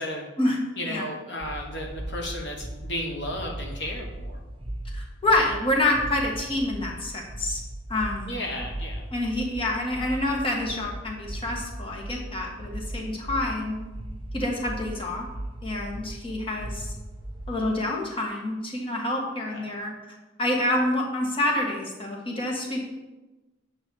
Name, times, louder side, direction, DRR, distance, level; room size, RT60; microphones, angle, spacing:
voice 1, 0.7-4.4 8.3-9.0, left 1 dB, 65° left, 0 dB, 1.2 m, -33 dB
sound 1, 1.4-17.7, right 1 dB, 30° right, 1.1 m, -38 dB
voice 2, 4.9-7.6 7.9-8.3 9.1-13.8 14.3-15.3 15.6-16.9 17.5-19.9 20.4-22.9, left 1 dB, 30° left, -1 dB, 1.4 m, -27 dB
8.0 x 4.0 x 6.8 m, 1.1 s
head